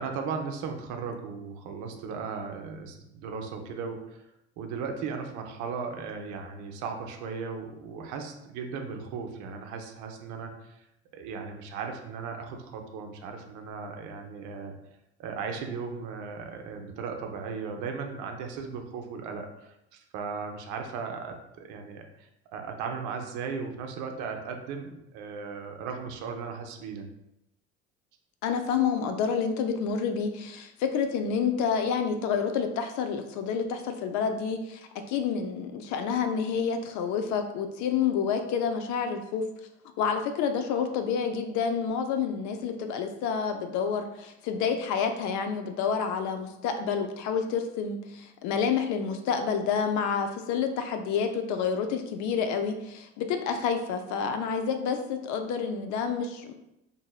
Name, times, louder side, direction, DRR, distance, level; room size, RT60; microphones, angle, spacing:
voice 1, 0.0-4.2 4.6-10.8 11.1-14.7 15.2-27.1, right 5 dB, 55° right, 4 dB, 0.6 m, -37 dB
voice 2, 28.4-39.4 40.0-56.5, left 6 dB, 55° left, 6 dB, 0.5 m, -29 dB
2.8 x 2.6 x 2.3 m, 0.86 s
hypercardioid pair, 70°, 35 cm